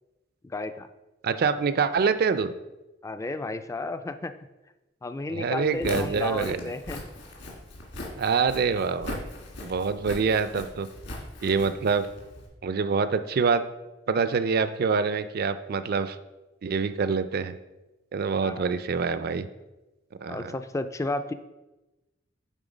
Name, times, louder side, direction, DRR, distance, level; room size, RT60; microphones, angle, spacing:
voice 1, 0.4-0.9 3.0-4.3 5.0-7.0 18.4-18.7 20.3-21.3, left 2 dB, 15° left, 10 dB, 0.3 m, -32 dB
voice 2, 1.2-2.5 5.3-6.6 8.2-9.2 9.6-10.9 11.4-12.1 12.6-13.6 14.1-16.2 16.6-17.5 18.1-19.5 20.2-20.5, right 5 dB, 55° right, 12 dB, 0.4 m, -25 dB
Walk footsteps, 5.7-12.5, left 1 dB, 65° left, 1.8 m, -39 dB
9.1 x 3.8 x 5.0 m, 1.1 s
head